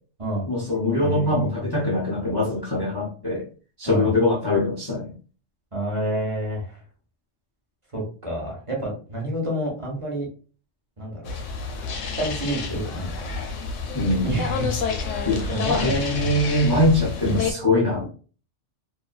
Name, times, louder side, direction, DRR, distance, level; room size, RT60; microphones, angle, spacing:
voice 1, 0.5-3.5 3.8-5.1 13.9-14.5 15.3-18.1, left 1 dB, 40° left, -4 dB, 0.3 m, -23 dB
voice 2, 1.0-1.7 3.9-4.1 5.7-6.8 7.9-10.3 11.0-11.2 12.0-13.4 14.2-16.4 17.2-17.4, right 1 dB, 30° right, -3 dB, 0.8 m, -29 dB
sound 1, 11.3-17.5, left 5 dB, 85° left, 0.9 m, -29 dB
2.5 x 2.4 x 2.2 m, 0.39 s
omnidirectional pair, 1.2 m